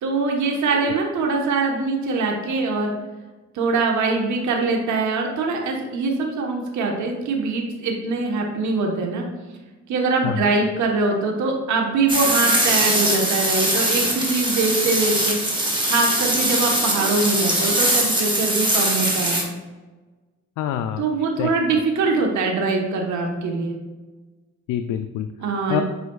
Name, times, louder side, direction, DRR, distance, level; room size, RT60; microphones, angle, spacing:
voice 1, 0.0-2.9 3.5-9.2 9.9-15.4 15.8-19.4 21.0-23.7 25.4-25.8, right 3 dB, 70° right, 1 dB, 1.2 m, -23 dB
sound 1, 12.1-19.4, right 1 dB, 15° right, 1.5 m, -21 dB
voice 2, 20.6-21.1 21.4-21.5 24.7-25.3 25.7-25.8, left 10 dB, 80° left, 8 dB, 0.5 m, -26 dB
8.0 x 5.1 x 2.4 m, 1.3 s
cardioid pair, 90°, 30 cm